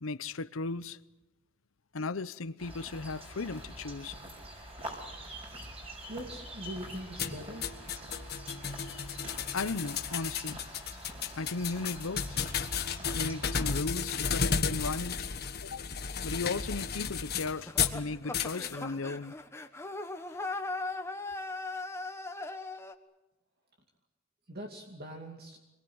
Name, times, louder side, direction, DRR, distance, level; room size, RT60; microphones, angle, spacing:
voice 1, 0.0-1.0 1.9-4.2 9.5-10.6 11.4-12.4 13.1-15.3 15.6-15.8 16.2-19.4, left 3 dB, 75° left, 0.8 m, -36 dB
sound 1, 2.6-13.8, right 1 dB, 30° right, 5.8 m, -45 dB
voice 2, 6.1-7.8 24.5-25.6, right 1 dB, 50° right, 2.5 m, -42 dB
sound 2, 7.2-18.0 18.3-18.7, left 6 dB, 50° left, 1.5 m, -33 dB
sound 3, 17.6-22.9, left 2 dB, 15° left, 1.3 m, -38 dB
26.0 x 21.0 x 8.0 m
head